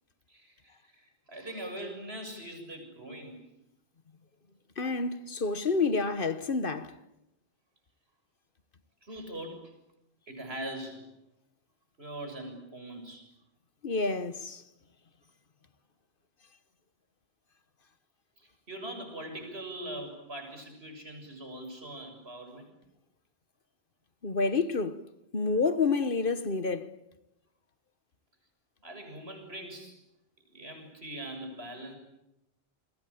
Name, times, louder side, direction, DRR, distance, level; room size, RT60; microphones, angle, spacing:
voice 1, 0.3-3.4 9.0-9.7 10.3-11.1 12.0-13.2 18.4-22.7 28.8-30.0 30.5-32.0, right 1 dB, 85° right, 7.4 m, -42 dB
voice 2, 4.8-6.9 13.8-14.6 24.2-25.0 25.3-26.9, left 4 dB, 60° left, 1.5 m, -29 dB
29.5 x 22.5 x 8.6 m
omnidirectional pair, 1.0 m